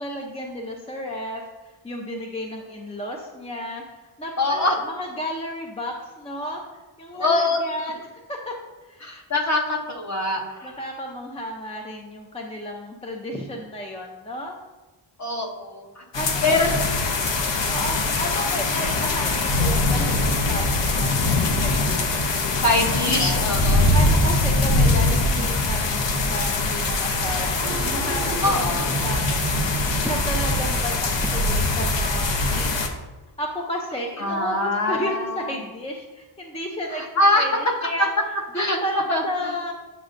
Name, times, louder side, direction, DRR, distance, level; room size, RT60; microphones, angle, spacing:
voice 1, 0.0-9.1 10.6-14.6 16.1-16.7 17.7-22.6 23.1-23.4 23.9-28.6 29.0-29.5 29.9-32.7 33.4-38.1 38.5-39.7, equal, 15° left, 1 dB, 0.4 m, -33 dB
voice 2, 4.4-4.7 7.2-7.6 9.0-10.7 15.2-16.0 16.4-16.7 17.4-17.8 22.6-23.9 28.4-28.9 34.2-35.5 37.0-37.5 37.8-37.9 38.6-38.8 39.1-39.2, left 2 dB, 35° left, 1 dB, 0.9 m, -23 dB
sound 1, 16.1-32.9, left 2 dB, 60° left, 0.8 m, -22 dB
sound 2, 27.5-32.8, right 3 dB, 35° right, 0.7 m, -34 dB
8.2 x 6.3 x 2.5 m, 1.2 s
wide cardioid pair, 165°, 49 cm